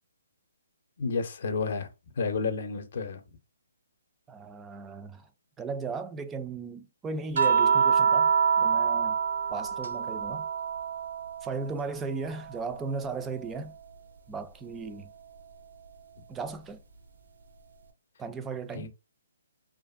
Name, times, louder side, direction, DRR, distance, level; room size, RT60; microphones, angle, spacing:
voice 1, 1.0-1.9 2.1-3.2 18.7-18.9, left 4 dB, 55° left, 0.6 m, -30 dB
voice 2, 4.3-5.3 5.6-8.3 8.6-9.2 9.5-10.5 11.4-13.8 14.3-15.1 16.3-16.8 18.2-18.9, right 4 dB, 10° right, 0.3 m, -36 dB
sound 1, 7.4-11.8 12.2-13.8 15.4-15.5, right 6 dB, 70° right, 0.6 m, -27 dB
2.5 x 2.4 x 2.4 m
hypercardioid pair, 150°, 0 cm